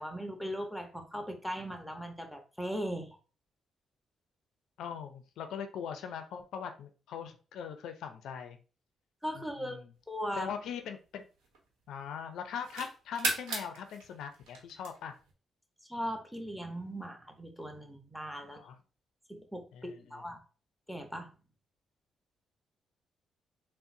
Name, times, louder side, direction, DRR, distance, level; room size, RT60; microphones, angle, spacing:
voice 1, 0.0-3.2 9.2-9.8 10.1-10.5 15.9-18.6 19.3-20.4 20.9-21.3, equal, ahead, 4 dB, 0.9 m, -38 dB
voice 2, 4.8-8.6 9.4-9.9 10.4-11.2 11.9-15.1 18.5-18.8 19.7-20.2, left 7 dB, 80° left, 7 dB, 0.4 m, -41 dB
sound 1, 10.2-11.9 12.3-15.3, right 3 dB, 90° right, 0.9 m, -38 dB
3.8 x 2.0 x 2.6 m, 0.35 s
supercardioid pair, 60°, 0 cm